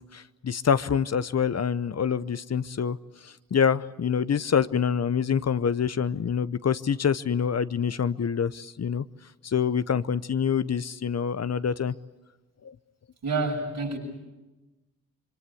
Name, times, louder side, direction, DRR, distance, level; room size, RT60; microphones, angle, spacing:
voice 1, 0.0-3.0 3.2-9.0 9.4-11.9 12.6-12.7, left 7 dB, 50° left, 15 dB, 0.8 m, -26 dB
voice 2, 13.2-14.0, right 3 dB, 75° right, -2 dB, 7.2 m, -28 dB
25.5 x 24.0 x 8.4 m, 1.1 s
supercardioid pair, 45°, 34 cm